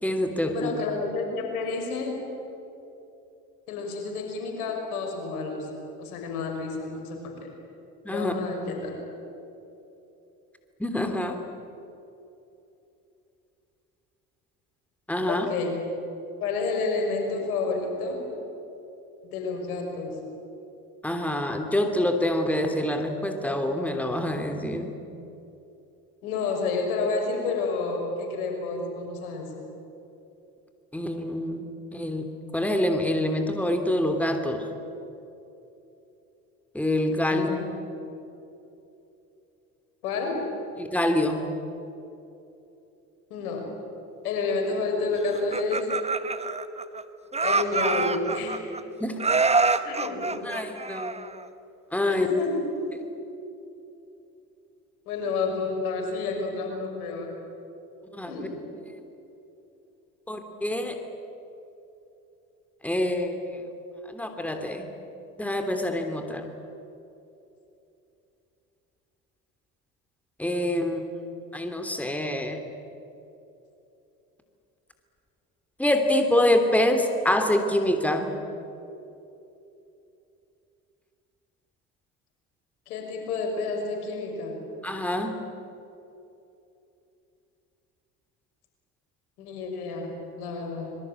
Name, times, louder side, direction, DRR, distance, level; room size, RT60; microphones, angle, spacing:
voice 1, 0.0-0.7 8.0-8.3 10.8-11.4 15.1-15.5 21.0-24.9 30.9-31.7 31.9-34.6 36.7-37.5 40.8-41.5 49.0-49.2 50.4-51.2 51.9-52.3 58.1-58.5 60.3-61.0 62.8-63.6 64.1-64.9 65.4-66.5 70.4-71.0 71.5-72.6 75.8-78.3 84.8-85.4, left 1 dB, 5° left, 5 dB, 3.0 m, -26 dB
voice 2, 0.5-2.3 3.7-5.7 6.0-7.5 8.1-9.0 15.3-15.9 16.4-18.3 19.3-20.1 26.2-29.5 37.3-37.7 40.0-40.4 43.3-43.7 44.2-45.9 47.4-48.6 49.8-50.5 52.1-52.7 55.1-57.4 58.3-58.6 82.9-84.7 89.4-91.0, left 3 dB, 75° left, 2 dB, 6.3 m, -30 dB
Laughter, 45.3-47.0 47.3-48.8 49.2-51.5, right 4 dB, 15° right, 1.3 m, -26 dB
25.5 x 22.5 x 9.0 m, 2.9 s
hypercardioid pair, 65°, 44 cm